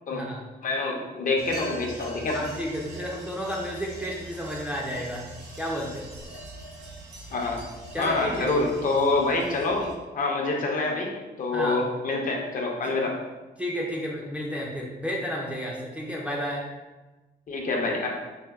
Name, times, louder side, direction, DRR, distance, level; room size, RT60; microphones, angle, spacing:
voice 1, 0.1-0.4 2.3-5.3 5.6-6.1 7.9-8.5 11.5-11.8 12.8-13.0 13.6-16.7, equal, 5° right, -4 dB, 0.4 m, -32 dB
voice 2, 0.6-2.4 7.3-7.6 8.0-11.1 11.4-13.2 17.5-18.1, left 3 dB, 50° left, 0 dB, 0.6 m, -26 dB
sound 1, 1.4-9.9, right 2 dB, 75° right, 0.8 m, -42 dB
4.2 x 2.1 x 3.4 m, 1.1 s
wide cardioid pair, 175°, 18 cm